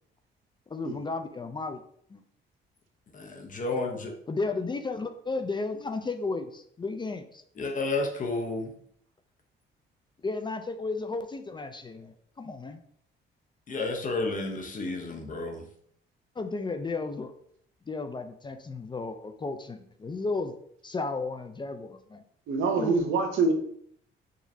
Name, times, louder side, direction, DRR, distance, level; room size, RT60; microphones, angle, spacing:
voice 1, 0.7-1.8 2.1-2.2 4.3-7.4 10.2-12.8 16.4-17.3 17.9-20.5 20.8-22.2 22.8-23.0, left 3 dB, 25° left, 7 dB, 0.4 m, -33 dB
voice 2, 3.1-4.1 7.6-8.7 13.7-15.6, left 3 dB, 40° left, 4 dB, 0.9 m, -31 dB
voice 3, 22.5-23.5, right 4 dB, 85° right, 5 dB, 0.8 m, -25 dB
5.0 x 3.0 x 2.7 m, 0.66 s
cardioid pair, 90°, 20 cm